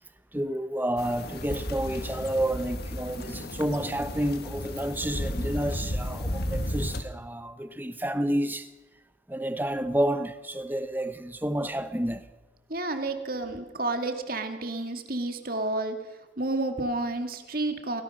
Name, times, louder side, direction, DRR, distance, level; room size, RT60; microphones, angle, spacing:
voice 1, 0.3-8.7 9.3-12.2, right 1 dB, 10° right, 1.0 m, -30 dB
sound 1, 1.0-7.0, left 1 dB, 55° left, 1.7 m, -33 dB
voice 2, 12.7-16.0 16.4-18.0, right 2 dB, 50° right, 2.2 m, -30 dB
28.5 x 17.0 x 6.6 m
head